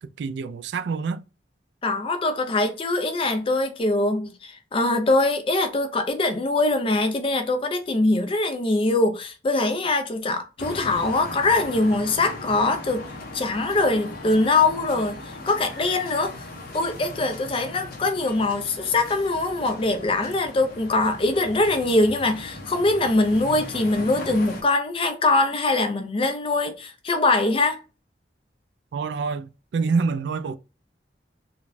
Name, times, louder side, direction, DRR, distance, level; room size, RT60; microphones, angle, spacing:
voice 1, 0.2-1.2 28.9-29.5 29.7-30.6, right 4 dB, 70° right, 0.3 m, -26 dB
voice 2, 1.8-13.1 13.3-16.5 16.7-27.8, left 2 dB, 30° left, 0.4 m, -23 dB
sound 1, 10.6-24.6, left 2 dB, 55° left, 0.8 m, -38 dB
3.9 x 2.2 x 2.5 m
head